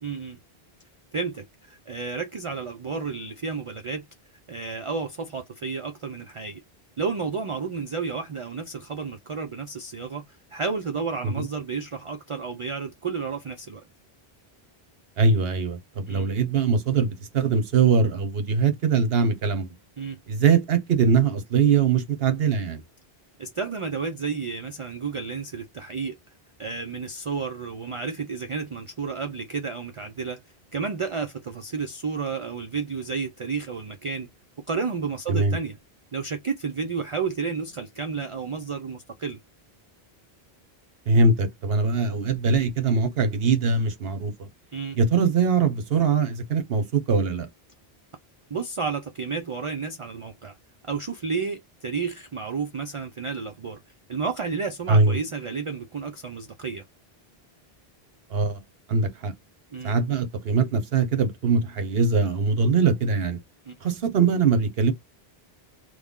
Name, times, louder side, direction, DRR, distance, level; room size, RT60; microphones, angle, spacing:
voice 1, 0.0-0.4 1.1-4.1 4.5-6.6 7.0-10.2 10.5-13.8 16.1-16.3 20.0-20.2 23.4-26.2 26.6-30.4 30.7-34.3 34.7-35.8 36.1-39.4 44.7-45.0 48.5-50.5 50.9-53.8 54.1-56.8 59.7-60.0 63.7-63.8, right 5 dB, 45° right, 0.4 m, -31 dB
voice 2, 15.2-19.7 20.3-22.8 35.3-35.6 41.1-44.5 45.0-47.5 54.9-55.2 58.3-58.6 58.9-59.3 59.8-63.4 63.8-64.9, right 5 dB, 70° right, 1.1 m, -22 dB
3.2 x 2.2 x 3.6 m
omnidirectional pair, 1.0 m